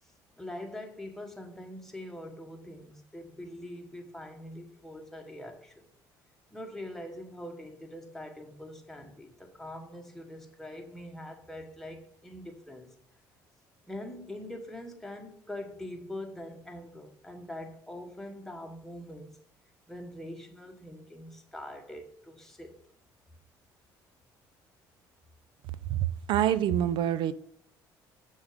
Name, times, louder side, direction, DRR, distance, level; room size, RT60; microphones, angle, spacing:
voice 1, 0.4-5.8 6.5-12.9 13.9-19.4 19.9-22.7, left 1 dB, 5° left, 1.2 m, -43 dB
voice 2, 26.3-27.3, right 10 dB, 65° right, 0.4 m, -26 dB
6.3 x 3.6 x 4.9 m
supercardioid pair, 85°, 9 cm